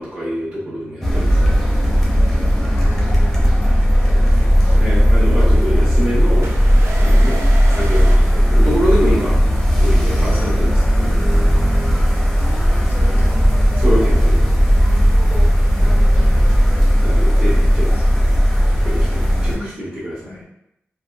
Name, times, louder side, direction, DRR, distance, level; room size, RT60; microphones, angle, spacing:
voice 1, 0.0-1.7 4.7-6.5 7.0-7.4 7.7-9.3 9.8-11.2 13.0-13.2 13.8-14.7 15.8-16.0 17.0-17.9 18.8-20.4, equal, 45° right, -11 dB, 0.9 m, -25 dB
sound 1, 1.0-19.6, equal, 5° left, 0.6 m, -15 dB
voice 2, 2.8-4.8 5.5-6.0 7.3-7.6 12.4-14.1 14.7-15.2 15.6-17.0 17.7-18.7 19.5-19.8 20.3-20.5, left 1 dB, 65° left, 0 dB, 0.6 m, -39 dB
sound 2, 6.4-9.2, right 3 dB, 75° right, 0.4 m, -33 dB
3.3 x 2.3 x 2.3 m, 0.81 s
wide cardioid pair, 155°, 5 cm